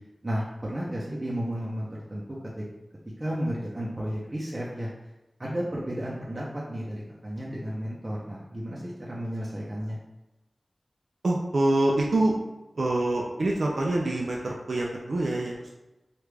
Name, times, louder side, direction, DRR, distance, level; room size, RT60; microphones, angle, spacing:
voice 1, 0.2-2.4 3.2-4.9 5.4-10.0, equal, 35° right, -6 dB, 0.7 m, -33 dB
voice 2, 11.2-12.4 12.7-15.7, right 2 dB, 80° right, -1 dB, 0.4 m, -25 dB
3.2 x 2.4 x 3.3 m, 0.98 s
wide cardioid pair, 50°, 0 cm